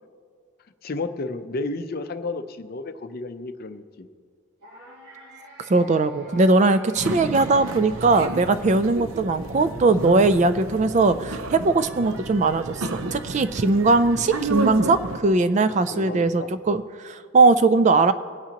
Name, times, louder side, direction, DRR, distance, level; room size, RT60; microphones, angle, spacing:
voice 1, 0.8-4.1 15.6-16.5, left 3 dB, 45° left, 9 dB, 0.5 m, -32 dB
sound 1, 4.6-8.8, right 1 dB, 50° right, 2.3 m, -46 dB
voice 2, 5.7-18.1, right 3 dB, 35° right, 12 dB, 0.3 m, -20 dB
sound 2, 7.0-15.2, right 2 dB, 80° right, 0.6 m, -31 dB
22.5 x 8.5 x 2.9 m, 2.1 s
head